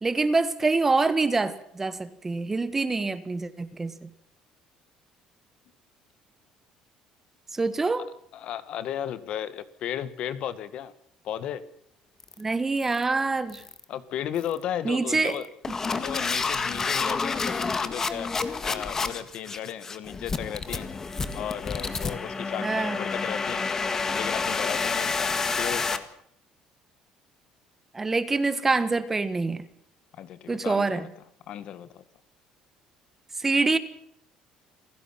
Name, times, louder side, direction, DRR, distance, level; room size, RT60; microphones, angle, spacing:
voice 1, 0.0-4.1 7.5-8.1 12.4-13.6 14.8-15.4 22.6-23.0 27.9-29.6 30.5-31.1 33.4-33.8, right 3 dB, 15° right, 13 dB, 1.5 m, -25 dB
voice 2, 8.3-10.9 11.2-11.7 13.9-15.5 16.0-18.3 18.6-20.9 21.3-23.7 24.1-26.1 30.2-31.1 31.5-32.0, left 10 dB, 55° left, 14 dB, 1.7 m, -35 dB
sound 1, 12.2-12.4 12.8-13.0 13.5-13.8 14.4-14.6 15.3-26.0, left 4 dB, 20° left, 1.8 m, -29 dB
29.0 x 15.5 x 5.9 m, 0.69 s
cardioid pair, 145°, 2 cm